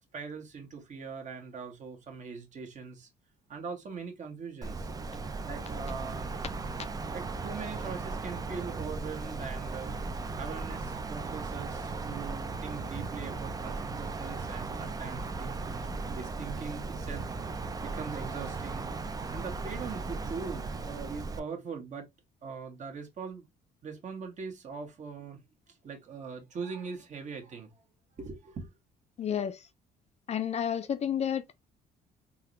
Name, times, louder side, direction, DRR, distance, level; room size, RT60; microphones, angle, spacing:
voice 1, 0.1-3.1 3.5-4.9 5.4-6.3 7.1-9.9 10.4-19.0 19.3-22.1 22.4-23.4 23.8-25.4 25.7-27.7 28.2-28.8, right 5 dB, 45° right, 1.5 m, -41 dB
Wind, 4.6-21.4, right 3 dB, 20° right, 0.5 m, -37 dB
voice 2, 29.2-29.6 30.3-31.6, left 8 dB, 40° left, 0.5 m, -31 dB
3.9 x 2.7 x 3.1 m
cardioid pair, 110°, 17 cm